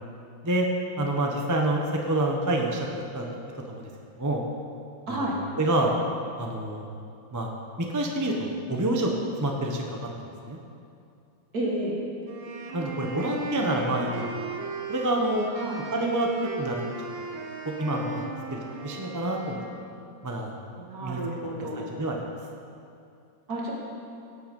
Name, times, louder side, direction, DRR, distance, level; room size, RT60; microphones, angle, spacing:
voice 1, 1.0-2.9 3.1-3.4 3.7-3.9 4.2-4.4 5.1-5.2 5.6-6.0 6.4-6.9 7.3-7.5 7.8-9.1 9.4-10.1 10.5-10.6 12.7-14.4 14.9-15.5 15.9-16.3 16.6-16.8 17.2-17.3 17.6-19.6 20.2-20.6 21.0-21.2 21.8-22.2, right 1 dB, 15° right, 0 dB, 0.7 m, -27 dB
voice 2, 5.1-5.4 11.5-12.0 15.5-15.8 20.8-21.9 23.5-23.7, right 1 dB, 50° right, -3 dB, 2.6 m, -31 dB
sound 1, 12.2-19.7, right 3 dB, 80° right, 2.0 m, -36 dB
17.5 x 7.9 x 5.5 m, 2.5 s
omnidirectional pair, 2.1 m